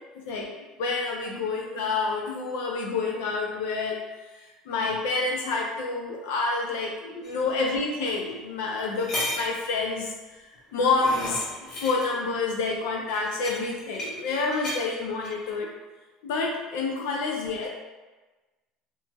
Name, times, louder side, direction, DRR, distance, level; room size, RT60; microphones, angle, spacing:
voice 1, 0.1-0.5 0.8-11.4 11.7-15.7 16.2-17.7, left 3 dB, 80° left, -1 dB, 0.6 m, -28 dB
sound 1, 7.2-7.3 8.2-8.4 8.8-9.6 10.5-12.1 13.1-14.2 14.5-14.8 15.2-15.5, left 1 dB, 45° left, 1.2 m, -34 dB
3.0 x 2.7 x 2.2 m, 1.2 s
supercardioid pair, 100°, 0 cm